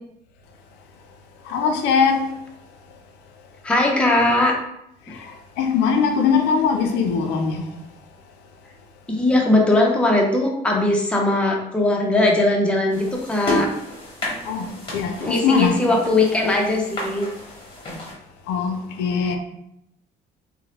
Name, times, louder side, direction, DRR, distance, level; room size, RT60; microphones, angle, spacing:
voice 1, 1.5-2.2 5.2-5.3 5.6-7.6 14.4-14.7 14.9-15.8 18.5-19.4, left 6 dB, 85° left, 0.4 m, -20 dB
voice 2, 3.6-4.5 5.1-5.2 9.1-13.7 15.2-17.3, left 2 dB, 5° left, 0.5 m, -19 dB
sound 1, 12.9-18.1, left 1 dB, 30° left, 1.0 m, -31 dB
2.8 x 2.0 x 2.8 m
cardioid pair, 110°, 17 cm